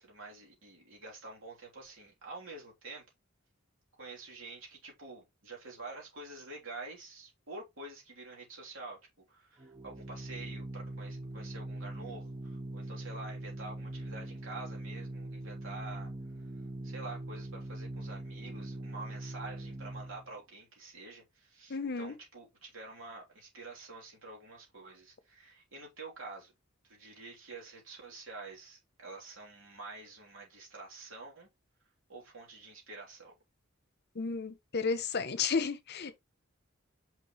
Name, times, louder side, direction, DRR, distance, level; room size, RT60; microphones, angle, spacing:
voice 1, 0.0-3.0 4.0-9.0 9.3-16.1 16.4-26.5 26.8-31.5 32.1-33.3, right 3 dB, 70° right, 3.3 m, -48 dB
Organ, 9.6-20.3, right 1 dB, 25° right, 1.1 m, -42 dB
voice 2, 21.7-22.2 34.1-36.2, left 5 dB, 55° left, 0.8 m, -33 dB
6.1 x 5.5 x 3.1 m
head